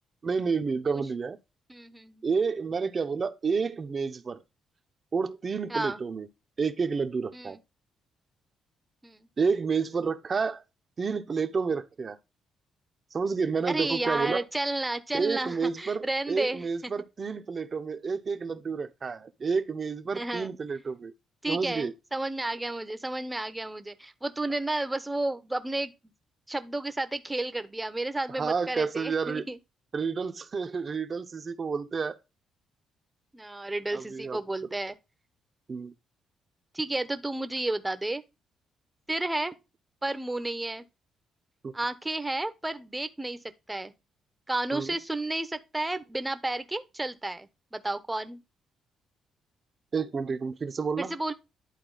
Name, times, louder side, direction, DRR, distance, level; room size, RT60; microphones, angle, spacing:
voice 1, 0.2-1.4 2.2-4.4 5.1-6.3 6.6-7.6 9.4-10.6 11.0-12.2 13.1-14.4 15.1-21.1 21.5-21.9 28.3-29.4 29.9-32.2 33.9-34.4 35.7-35.9 41.6-41.7 44.7-44.9 49.9-51.1, right 5 dB, 40° right, 0.9 m, -30 dB
voice 2, 1.7-2.2 5.7-6.0 7.3-7.6 9.0-9.3 13.7-16.9 20.1-20.5 21.4-25.9 26.5-29.6 33.3-35.0 36.7-38.2 39.1-39.6 40.0-40.8 41.7-43.4 43.7-43.9 44.5-48.4 51.0-51.3, right 2 dB, 10° right, 1.0 m, -32 dB
11.0 x 4.0 x 4.0 m
cardioid pair, 90°, 0 cm